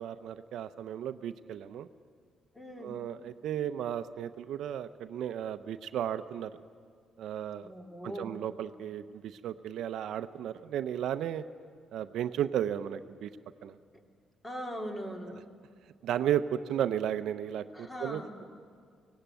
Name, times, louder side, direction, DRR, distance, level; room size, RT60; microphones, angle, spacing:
voice 1, 0.0-1.9 2.8-6.5 7.2-7.7 8.0-11.4 11.9-13.3 13.6-13.7 16.0-18.4, right 10 dB, 75° right, 12 dB, 0.6 m, -34 dB
voice 2, 2.5-2.9 7.6-8.3 14.4-15.4 17.7-18.3, equal, 15° left, 3 dB, 2.5 m, -40 dB
17.5 x 16.5 x 9.1 m, 2.1 s
cardioid pair, 90°, 0 cm